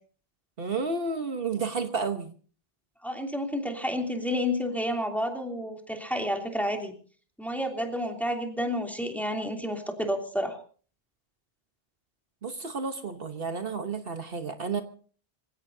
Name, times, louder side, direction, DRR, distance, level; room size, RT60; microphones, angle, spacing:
voice 1, 0.6-2.3 12.4-14.8, right 4 dB, 65° right, 6 dB, 1.4 m, -31 dB
voice 2, 3.0-6.9 7.4-10.5, equal, ahead, 2 dB, 3.0 m, -30 dB
26.0 x 16.5 x 2.7 m, 0.42 s
omnidirectional pair, 1.0 m